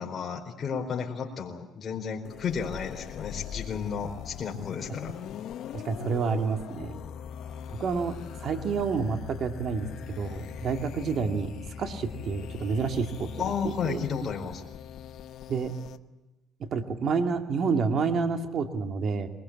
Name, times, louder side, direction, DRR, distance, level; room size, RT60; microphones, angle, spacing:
voice 1, 0.0-5.1 13.4-14.6, left 6 dB, 40° left, 1 dB, 4.5 m, -33 dB
sound 1, 2.2-16.0, left 8 dB, 70° left, 1.0 m, -41 dB
voice 2, 5.7-7.0 7.7-8.2 8.4-13.3 13.6-14.0 15.5-15.7 16.6-19.3, right 5 dB, 55° right, 6 dB, 2.3 m, -29 dB
22.5 x 21.5 x 8.6 m, 1.0 s
cardioid pair, 120°, 0 cm